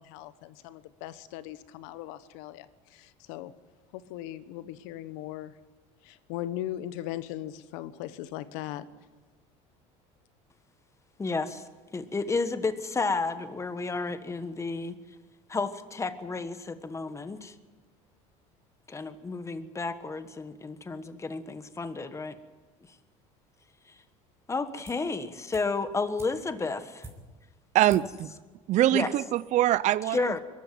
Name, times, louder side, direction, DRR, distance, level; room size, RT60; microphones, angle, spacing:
voice 1, 0.0-3.5 3.9-5.5 6.0-8.9, left 13 dB, 80° left, 14 dB, 1.2 m, -39 dB
voice 2, 11.2-11.6 11.9-14.9 15.5-17.5 18.9-22.4 24.5-27.1 27.9-28.1 28.9-29.1 30.1-30.4, left 4 dB, 20° left, 11 dB, 1.4 m, -31 dB
sound 1, 24.8-25.2 25.5-27.5 27.9-28.2 28.5-28.6, right 2 dB, 15° right, 5.7 m, -49 dB
voice 3, 27.7-28.3 28.7-30.4, right 14 dB, 50° right, 18 dB, 0.5 m, -24 dB
22.5 x 13.5 x 9.2 m, 1.3 s
supercardioid pair, 100°, 15 cm